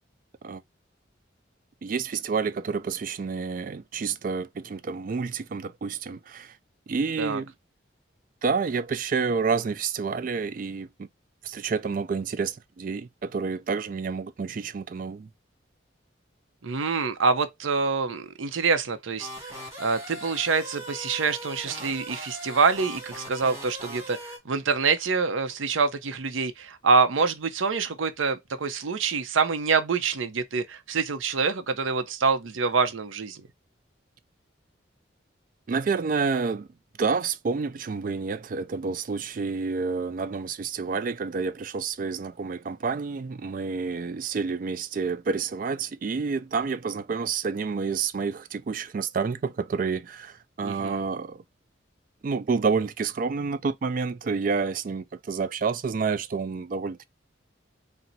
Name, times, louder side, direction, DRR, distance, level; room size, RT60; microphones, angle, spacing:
voice 1, 1.8-6.6 6.9-7.5 8.4-11.1 11.4-15.3 35.7-36.7 37.0-51.4 52.2-57.0, right 5 dB, 45° right, 0.3 m, -29 dB
voice 2, 16.6-19.5 19.8-33.4 50.6-51.0, right 4 dB, 85° right, 0.6 m, -26 dB
sound 1, 19.2-24.4, equal, 15° right, 1.7 m, -40 dB
4.3 x 2.1 x 3.9 m
head